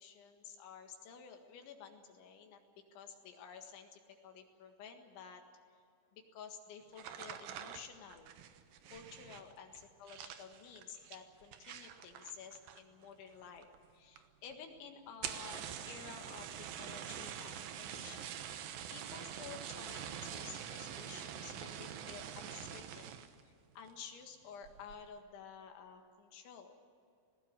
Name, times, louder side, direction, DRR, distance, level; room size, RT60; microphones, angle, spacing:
voice 1, 0.0-5.4 5.7-5.8 6.1-8.3 8.9-9.7 10.0-13.7 13.9-18.4 18.9-26.8, left 6 dB, 70° left, 4 dB, 3.9 m, -52 dB
sound 1, 6.9-13.1 13.3-13.9 14.2-14.3 14.5-14.6 15.1-23.4 23.9-24.2 24.6-25.0, right 9 dB, 80° right, 2.1 m, -46 dB
19.5 x 18.5 x 9.7 m, 2.4 s
omnidirectional pair, 5.8 m